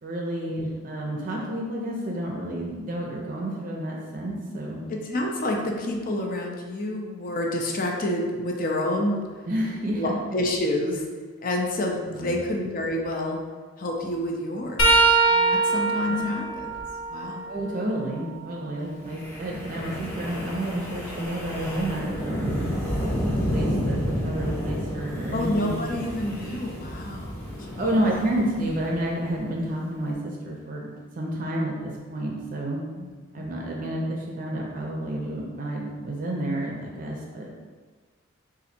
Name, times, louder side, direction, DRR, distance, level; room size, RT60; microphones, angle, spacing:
voice 1, 0.0-4.8 9.5-10.1 12.1-12.4 16.1-16.3 17.5-22.6 23.3-26.1 27.8-32.8 33.3-37.5, right 1 dB, 40° right, -1 dB, 0.5 m, -30 dB
voice 2, 4.9-9.2 9.9-11.0 11.4-13.4 13.8-15.0 15.3-16.7 17.1-17.5 25.3-27.4 27.7-27.9 32.9-33.5, left 1 dB, 40° left, 1 dB, 0.5 m, -28 dB
sound 1, 14.8-18.6 19.1-21.0 23.9-24.1 25.4-25.5 26.9-27.0, right 3 dB, 75° left, 0.8 m, -25 dB
Wind, 19.1-29.4, equal, 10° left, 0.8 m, -31 dB
3.9 x 2.6 x 4.2 m, 1.5 s
head